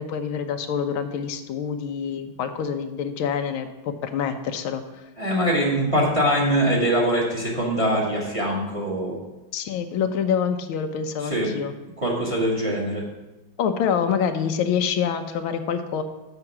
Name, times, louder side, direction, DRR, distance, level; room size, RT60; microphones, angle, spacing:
voice 1, 0.0-5.1 9.5-11.7 13.6-16.0, left 7 dB, 85° left, 8 dB, 1.5 m, -26 dB
voice 2, 5.2-9.2 11.2-11.5 12.0-13.0, equal, 15° right, -3 dB, 1.8 m, -23 dB
7.0 x 6.7 x 5.9 m, 1.1 s
omnidirectional pair, 2.2 m